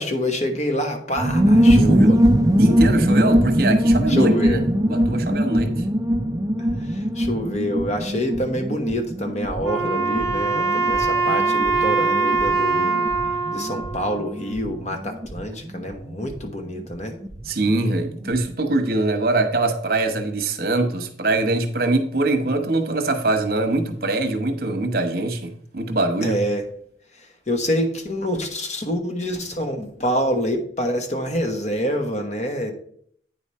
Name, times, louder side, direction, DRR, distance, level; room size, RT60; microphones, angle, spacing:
voice 1, 0.0-2.2 4.1-4.6 6.8-13.1 13.5-17.2 26.2-26.6 27.5-32.7, equal, 40° left, 5 dB, 1.2 m, -26 dB
sound 1, 1.2-17.5 17.7-17.8 18.0-18.4, equal, 20° right, 0.4 m, -21 dB
voice 2, 1.8-2.2 2.5-5.9 17.4-26.4, right 2 dB, 55° right, 7 dB, 1.0 m, -23 dB
Wind instrument woodwind instrument, 9.6-14.8, right 4 dB, 20° left, 1.3 m, -23 dB
9.0 x 4.8 x 4.3 m, 0.62 s
head